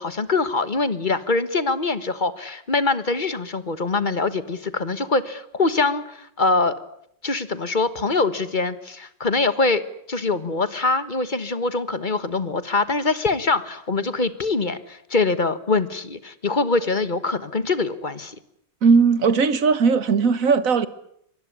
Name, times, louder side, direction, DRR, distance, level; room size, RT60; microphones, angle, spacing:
voice 1, 0.0-6.8 7.2-9.8 10.1-18.4, left 3 dB, 30° left, 14 dB, 1.4 m, -23 dB
voice 2, 18.8-20.9, right 5 dB, 50° right, 15 dB, 1.6 m, -18 dB
24.5 x 20.0 x 9.7 m, 0.71 s
omnidirectional pair, 1.9 m